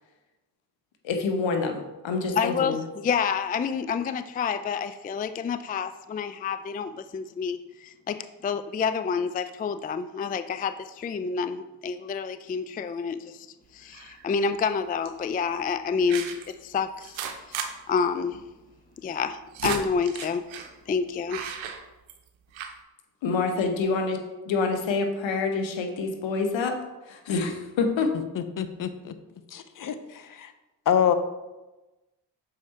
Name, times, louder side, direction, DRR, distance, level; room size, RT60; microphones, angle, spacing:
voice 1, 1.0-2.8 23.2-26.8 27.1-28.1, left 4 dB, 70° left, 5 dB, 1.2 m, -27 dB
voice 2, 2.4-2.8 3.0-13.5 13.7-17.2 17.5-17.6 17.9-18.4 19.0-20.4 20.9-21.4, left 6 dB, 20° left, 11 dB, 0.3 m, -28 dB
sound 1, 13.9-14.3 15.0-15.2 16.1-16.5 17.0-17.7 18.0-18.1 18.3-18.4 19.2-20.7 21.3-22.3 22.5-22.8, right 7 dB, 75° right, 0.9 m, -35 dB
voice 3, 28.3-29.1 29.5-30.5 30.9-31.1, left 9 dB, 45° left, 10 dB, 0.8 m, -26 dB
6.4 x 4.8 x 4.2 m, 1.1 s
hypercardioid pair, 45°, 47 cm